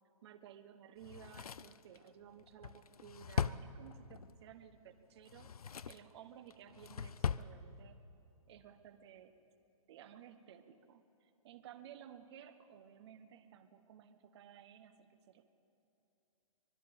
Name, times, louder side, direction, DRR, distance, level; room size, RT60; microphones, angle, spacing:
voice 1, 0.2-5.5 5.9-8.0 8.5-9.3 9.9-15.4, right 9 dB, 45° right, 10 dB, 1.3 m, -56 dB
Drawer open or close, 1.0-4.3 5.2-6.1 6.5-7.5 7.8-7.9, left 7 dB, 90° left, 0.6 m, -40 dB
25.0 x 20.5 x 5.3 m, 2.7 s
hypercardioid pair, 140°, 18 cm